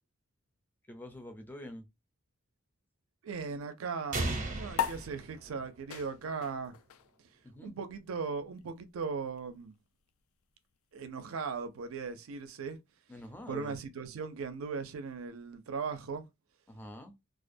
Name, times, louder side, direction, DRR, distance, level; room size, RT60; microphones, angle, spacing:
voice 1, 0.9-1.9 7.4-7.7 13.1-13.8 16.7-17.1, left 1 dB, 10° left, 0.4 m, -45 dB
voice 2, 3.2-6.7 7.6-9.7 10.9-12.8 13.5-16.3, right 5 dB, 80° right, 0.4 m, -38 dB
sound 1, 4.1-6.0, right 2 dB, 35° right, 0.6 m, -36 dB
sound 2, 4.7-11.5, left 8 dB, 85° left, 0.3 m, -42 dB
2.4 x 2.1 x 2.5 m
head